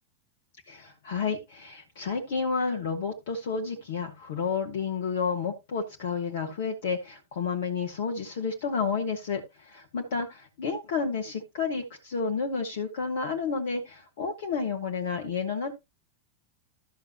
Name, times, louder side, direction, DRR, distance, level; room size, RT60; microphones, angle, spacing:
voice 1, 0.7-10.3 10.6-15.7, left 5 dB, 55° left, 2 dB, 1.5 m, -31 dB
13.0 x 6.7 x 3.0 m, 0.23 s
figure-of-eight pair, 90°, 0 cm